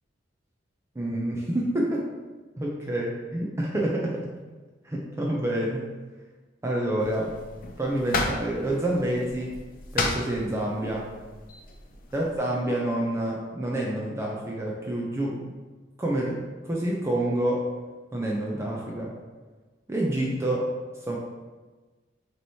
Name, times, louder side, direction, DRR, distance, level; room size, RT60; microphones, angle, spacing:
voice 1, 1.0-2.1 2.6-4.3 4.8-5.9 6.6-7.3 7.8-9.6 9.9-11.1 12.1-15.5 16.0-17.7 18.1-19.1 19.9-20.7 21.1-21.2, right 1 dB, 15° right, -3 dB, 0.5 m, -28 dB
sound 1, 7.0-12.4, left 3 dB, 50° left, 0.5 m, -34 dB
6.4 x 3.0 x 2.7 m, 1.3 s
head